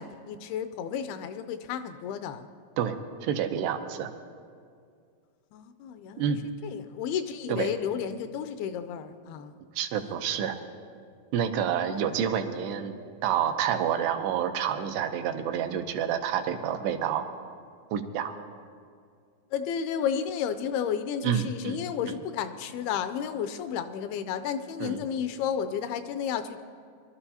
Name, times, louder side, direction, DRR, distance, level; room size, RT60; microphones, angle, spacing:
voice 1, 0.0-2.5 5.5-6.3 6.6-9.5 19.5-26.6, left 8 dB, 80° left, 9 dB, 2.4 m, -32 dB
voice 2, 3.2-4.1 6.2-6.4 7.5-7.7 9.8-10.6 11.3-12.9 13.2-17.3 17.9-18.3 21.2-21.8 24.8-25.0, right 8 dB, 85° right, 7 dB, 2.9 m, -28 dB
23.5 x 12.5 x 2.8 m, 2.2 s
omnidirectional pair, 4.6 m